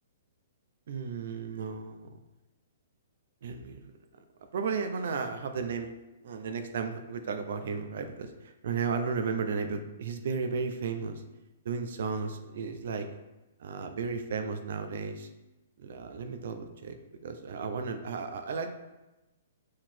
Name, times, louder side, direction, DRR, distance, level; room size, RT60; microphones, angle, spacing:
voice 1, 0.9-2.1 3.4-3.8 4.5-5.9 6.2-11.2 11.6-13.1 13.6-15.3 15.8-17.0 17.2-18.7, right 5 dB, 65° right, 7 dB, 0.8 m, -34 dB
5.9 x 4.8 x 4.4 m, 1.0 s
hypercardioid pair, 150°, 0 cm